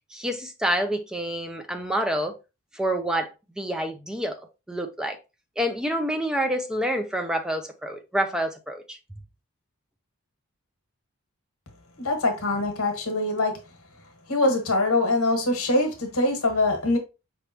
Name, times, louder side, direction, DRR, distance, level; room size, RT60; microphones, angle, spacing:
voice 1, 0.1-2.4 2.7-4.4 4.7-5.2 5.6-9.0, equal, 5° right, 0.5 m, -27 dB
voice 2, 12.0-13.6 14.3-17.0, left 2 dB, 70° left, 1.4 m, -23 dB
5.1 x 3.4 x 2.9 m
head